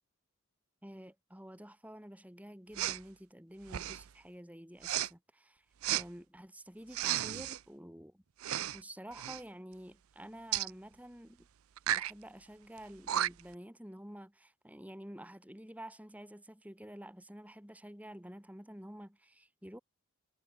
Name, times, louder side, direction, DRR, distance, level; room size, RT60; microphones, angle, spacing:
voice 1, 0.8-5.7 5.9-8.2 8.7-11.5 11.9-19.8, equal, 5° right, 3.7 m, -50 dB
Respiratory sounds, 2.7-3.0 3.7-4.1 4.8-5.1 5.8-6.0 6.9-7.6 8.4-8.8 9.1-9.4 10.5-10.7 11.8-12.1 12.8-12.9 13.1-13.5, right 12 dB, 80° right, 0.5 m, -33 dB
head